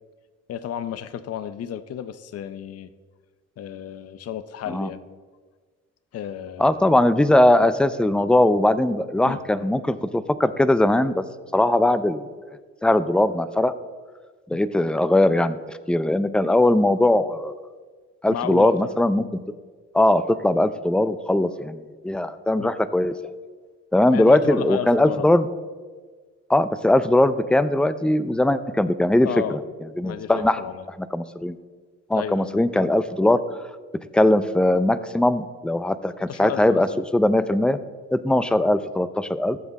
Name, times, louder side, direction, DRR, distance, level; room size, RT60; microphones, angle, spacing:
voice 1, 0.5-2.9 3.6-5.0 6.1-6.8 9.2-9.4 14.5-14.6 18.3-18.7 22.6-22.7 24.1-25.3 29.2-29.6 30.0-30.8 32.1-32.5 36.3-37.0, left 9 dB, 55° left, 14 dB, 0.6 m, -32 dB
voice 2, 6.6-11.2 11.5-12.3 12.8-13.7 14.5-15.6 15.9-17.5 18.2-19.3 19.9-23.1 23.9-25.5 26.5-29.6 30.0-30.6 31.1-31.5 32.1-33.4 34.1-36.9 37.1-37.8 38.1-39.6, left 1 dB, 5° left, 14 dB, 0.5 m, -20 dB
15.0 x 7.2 x 4.1 m, 1.5 s
cardioid pair, 90°, 30 cm